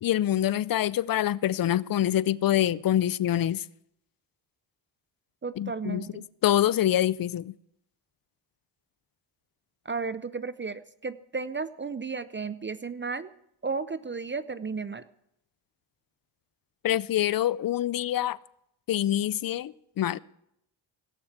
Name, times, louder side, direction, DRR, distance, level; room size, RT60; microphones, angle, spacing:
voice 1, 0.0-3.6 5.6-6.0 6.4-7.5 16.8-18.4 18.9-20.2, left 12 dB, 45° left, 0.5 m, -25 dB
voice 2, 5.4-6.3 9.8-13.3 13.6-15.1, right 4 dB, 25° right, 0.5 m, -34 dB
17.5 x 7.0 x 8.0 m
supercardioid pair, 60°, 50 cm